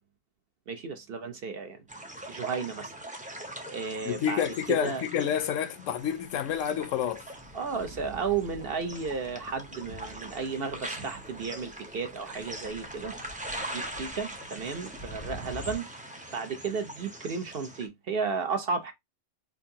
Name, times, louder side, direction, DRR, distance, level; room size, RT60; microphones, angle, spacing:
voice 1, 0.7-1.8 2.3-2.9 3.7-4.4 4.7-5.0 7.5-13.1 13.7-15.9 16.3-18.9, right 5 dB, 55° right, 0.8 m, -33 dB
sound 1, 1.9-17.9, right 1 dB, 10° right, 0.3 m, -42 dB
voice 2, 4.0-7.2, left 9 dB, 75° left, 0.9 m, -29 dB
Thunder, 6.2-15.8, equal, 75° right, 1.6 m, -48 dB
4.5 x 2.6 x 2.7 m
omnidirectional pair, 1.3 m